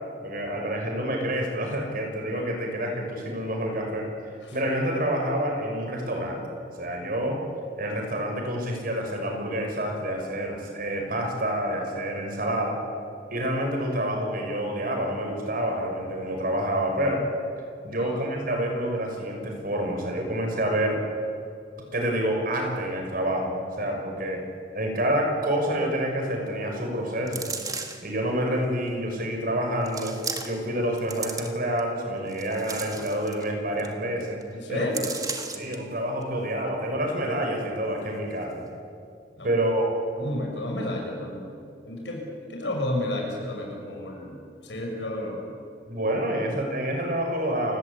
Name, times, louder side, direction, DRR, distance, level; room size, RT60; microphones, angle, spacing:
voice 1, 0.2-4.1 4.5-6.4 6.8-7.4 7.8-12.8 13.3-17.3 17.8-21.0 21.9-24.4 24.7-27.5 28.0-34.4 34.7-34.9 35.5-38.7 39.4-39.9 45.9-47.8, right 1 dB, 55° right, 2 dB, 6.0 m, -28 dB
sound 1, 27.3-28.1 28.9-29.0 29.9-30.7 31.0-31.8 32.3-33.5 33.8-33.9 34.2-34.4 34.9-35.8 36.2-36.3, right 4 dB, 20° right, 2.1 m, -35 dB
voice 2, 34.5-35.1 39.4-39.5 40.2-41.5 41.8-42.2 42.5-44.4 44.6-45.5, left 1 dB, 85° left, 0 dB, 7.2 m, -31 dB
29.0 x 18.0 x 8.5 m, 2.4 s
head